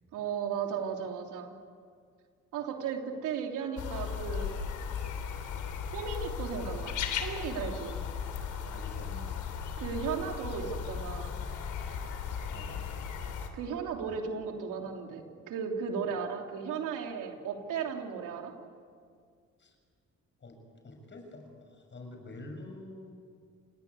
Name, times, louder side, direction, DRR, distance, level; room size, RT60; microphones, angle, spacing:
voice 1, 0.1-1.5 2.5-4.6 5.9-8.0 9.8-11.4 13.5-18.5, right 6 dB, 90° right, 2 dB, 3.4 m, -35 dB
sound 1, 3.8-13.5, left 7 dB, 80° left, 3.4 m, -36 dB
voice 2, 8.7-9.6 12.5-13.1 14.1-14.2 19.6-19.7 20.4-20.6 20.8-23.1, left 2 dB, 40° left, 4 dB, 6.7 m, -47 dB
29.5 x 18.0 x 9.8 m, 2.1 s
cardioid pair, 90°, 30 cm